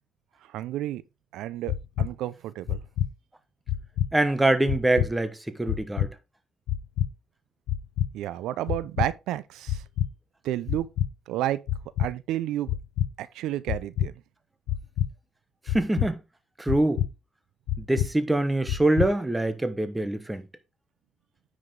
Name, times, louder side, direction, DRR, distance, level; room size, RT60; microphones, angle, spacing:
voice 1, 0.5-1.0 1.3-2.8 8.1-9.8 10.4-10.9 11.3-11.6 12.0-12.7 13.2-14.1, right 13 dB, 90° right, 0.5 m, -31 dB
sound 1, 1.7-2.1 2.7-3.1 3.7-4.1 4.7-5.1 5.7-6.1 6.7-7.1 7.7-8.1 8.7-9.1 9.7-10.1 10.7-11.1 11.7-12.1 12.7-13.1 13.7-14.1 14.7-15.1 15.7-16.1 16.7-17.1 17.7-18.1 18.7-19.1, left 12 dB, 90° left, 0.7 m, -26 dB
voice 2, 4.1-6.1 15.7-16.2 16.6-17.0 17.8-20.4, right 2 dB, 10° right, 1.2 m, -24 dB
9.8 x 5.1 x 3.7 m
cardioid pair, 90°, 0 cm